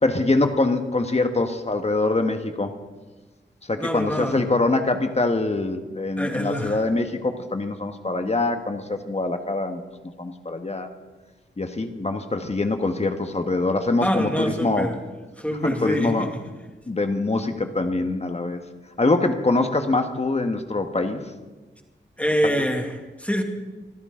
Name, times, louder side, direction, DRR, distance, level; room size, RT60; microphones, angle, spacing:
voice 1, 0.0-2.7 3.7-10.9 11.6-15.0 15.6-16.3 16.9-18.6 19.0-21.2 22.4-22.6, left 2 dB, 35° left, 6 dB, 1.4 m, -24 dB
voice 2, 3.8-4.5 6.2-6.9 14.0-15.0 15.4-16.3 22.2-23.4, equal, 5° left, 3 dB, 2.3 m, -25 dB
25.0 x 15.0 x 3.8 m, 1.3 s
wide cardioid pair, 90°, 19 cm